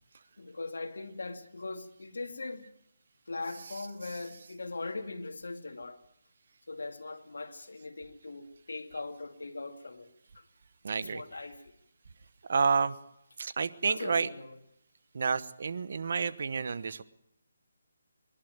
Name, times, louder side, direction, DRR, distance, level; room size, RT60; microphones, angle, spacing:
voice 1, 0.4-2.7 3.3-6.0 6.7-10.1 10.3-10.4 10.9-11.7 13.8-14.6 16.6-17.0, left 3 dB, 85° left, 2.3 m, -40 dB
voice 2, 3.7-4.2 10.8-11.2 12.5-13.0 13.4-14.3 15.1-17.0, right 5 dB, 55° right, 1.0 m, -30 dB
25.0 x 11.5 x 9.1 m
hypercardioid pair, 165°, 0 cm